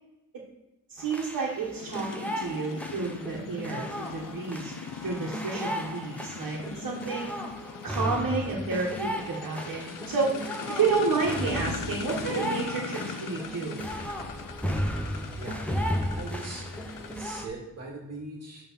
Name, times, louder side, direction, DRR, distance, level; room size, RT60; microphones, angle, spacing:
voice 1, 0.9-4.7 5.0-7.4 7.8-9.8 10.1-10.4 10.7-13.8, right 4 dB, 75° right, -5 dB, 1.5 m, -30 dB
sound 1, 1.0-17.5, equal, 5° left, 0.7 m, -35 dB
sound 2, 1.8-17.2, left 7 dB, 70° left, 0.6 m, -40 dB
voice 2, 16.1-16.6 17.1-18.6, right 2 dB, 50° right, -2 dB, 1.9 m, -40 dB
8.4 x 3.5 x 5.6 m, 0.96 s
wide cardioid pair, 155°, 33 cm